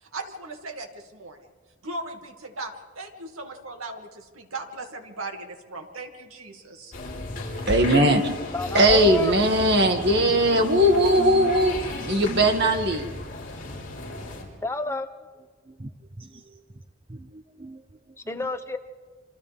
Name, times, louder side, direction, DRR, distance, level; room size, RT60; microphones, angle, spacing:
voice 1, 0.0-1.4 1.8-6.9, right 2 dB, 90° right, 2.4 m, -38 dB
sound 1, 6.9-14.4, left 2 dB, 45° left, 5.5 m, -34 dB
voice 2, 7.7-8.2 8.7-11.8 12.1-13.1, right 1 dB, 50° right, 2.2 m, -19 dB
voice 3, 8.5-9.4 14.6-15.1 18.3-18.8, left 2 dB, 15° left, 0.8 m, -29 dB
voice 4, 10.5-11.5 12.0-12.6 13.7-13.8 15.7-15.9 16.2-16.6 17.1-17.8 18.3-18.5, equal, 25° right, 0.6 m, -39 dB
27.0 x 26.5 x 3.6 m
head